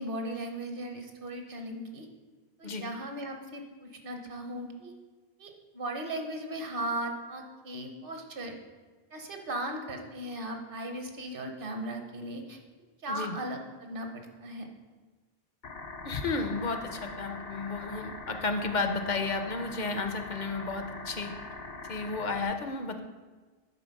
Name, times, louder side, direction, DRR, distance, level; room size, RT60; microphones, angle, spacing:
voice 1, 0.0-2.1 2.6-4.9 5.4-8.6 9.1-12.6 13.0-14.7, right 1 dB, 55° right, 4 dB, 1.1 m, -37 dB
sound 1, 15.6-22.5, left 3 dB, 70° left, 1.0 m, -42 dB
voice 2, 16.0-21.3 21.9-23.0, left 3 dB, 50° left, 7 dB, 0.7 m, -32 dB
9.9 x 3.9 x 5.2 m, 1.4 s
omnidirectional pair, 1.1 m